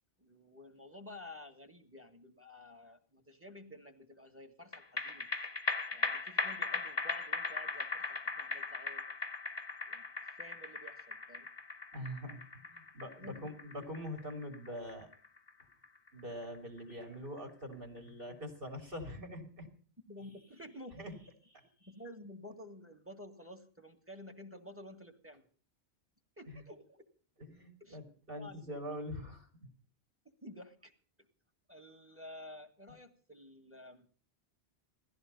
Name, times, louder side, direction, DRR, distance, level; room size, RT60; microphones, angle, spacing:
voice 1, 0.2-5.3 5.9-9.0 9.9-11.5 13.2-13.6 20.1-21.0 21.8-25.5 26.4-27.0 27.8-28.0 28.4-28.6 28.9-29.0 30.4-30.9 31.7-34.1, left 1 dB, 10° right, 9 dB, 1.8 m, -51 dB
sound 1, 4.7-17.4 17.7-17.8, left 3 dB, 25° left, 0.8 m, -39 dB
voice 2, 11.9-15.1 16.1-19.7 21.0-21.1 21.5-21.6 26.5-26.6 27.5-29.7, equal, 55° right, 3 dB, 3.6 m, -44 dB
17.0 x 14.0 x 5.4 m, 0.43 s
omnidirectional pair, 1.1 m